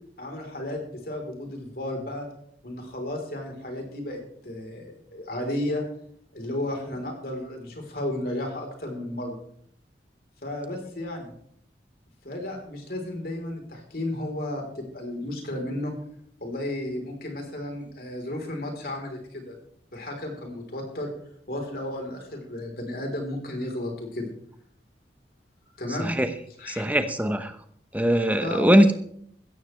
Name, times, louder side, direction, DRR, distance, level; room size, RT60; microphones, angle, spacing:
voice 1, 0.2-2.2 2.6-5.8 6.3-9.4 10.4-11.3 12.2-15.9 16.4-19.5 19.9-21.1 21.5-24.3 25.8-26.2 26.6-26.8 28.4-28.8, left 1 dB, 55° left, 2 dB, 3.9 m, -33 dB
voice 2, 26.7-27.5 27.9-28.9, equal, 10° right, 8 dB, 1.0 m, -21 dB
16.0 x 14.0 x 3.3 m, 0.65 s
head